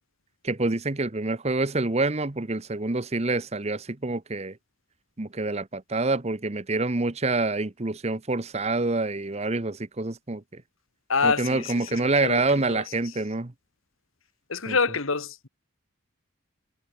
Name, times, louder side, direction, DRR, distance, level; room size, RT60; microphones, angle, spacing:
voice 1, 0.4-4.6 5.2-10.6 11.2-13.5 14.7-14.8, right 3 dB, 30° right, 0.9 m, -27 dB
voice 2, 11.1-12.8 14.5-15.5, left 4 dB, 75° left, 1.8 m, -27 dB
head